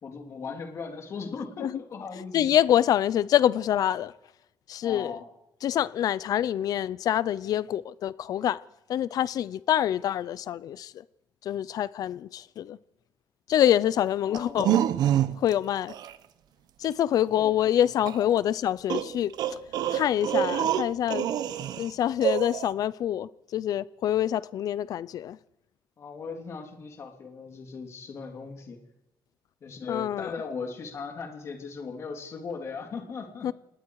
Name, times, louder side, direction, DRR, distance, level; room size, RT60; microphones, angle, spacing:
voice 1, 0.0-2.4 4.8-5.3 14.2-14.7 17.2-17.9 18.2-18.4 26.0-28.8 29.6-33.5, left 5 dB, 40° left, 3.2 m, -38 dB
voice 2, 2.3-4.1 4.7-5.1 5.6-8.6 8.9-10.9 11.4-12.8 13.5-14.8 15.4-15.9 16.8-19.6 19.9-21.3 21.8-25.4 29.9-30.3 33.4-33.5, left 11 dB, 55° left, 0.7 m, -26 dB
sound 1, 14.3-15.5 15.9-16.1 18.1-18.2 18.9-21.9 22.2-22.7, right 11 dB, 65° right, 0.9 m, -26 dB
28.0 x 19.0 x 4.9 m
cardioid pair, 180°, 7 cm